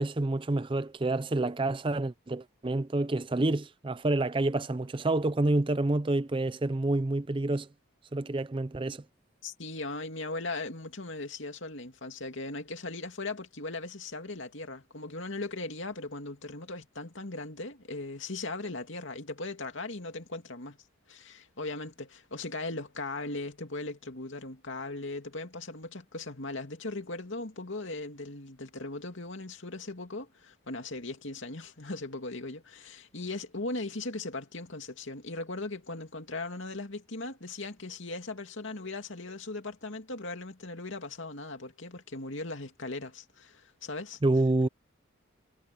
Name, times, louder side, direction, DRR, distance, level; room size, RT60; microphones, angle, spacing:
voice 1, 0.0-7.7 8.1-9.0 44.2-44.7, right 2 dB, 25° right, 0.5 m, -28 dB
voice 2, 9.4-20.8 21.1-44.2, left 2 dB, 65° left, 2.6 m, -38 dB
head